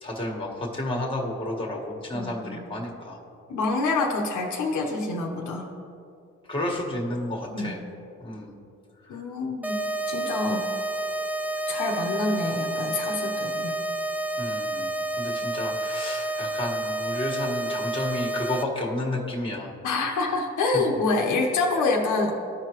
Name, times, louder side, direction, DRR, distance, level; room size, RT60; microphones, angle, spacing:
voice 1, 0.0-3.2 6.5-7.8 8.2-8.6 9.1-9.2 14.4-19.7, left 1 dB, 15° left, -1 dB, 1.6 m, -31 dB
voice 2, 2.1-2.7 3.5-5.7 7.5-7.8 9.1-10.7 11.7-13.8 19.8-22.4, left 3 dB, 75° left, 0 dB, 1.0 m, -27 dB
sound 1, 9.6-18.6, right 2 dB, 5° right, 0.4 m, -29 dB
14.0 x 4.8 x 3.0 m, 2.6 s
cardioid pair, 90°, 30 cm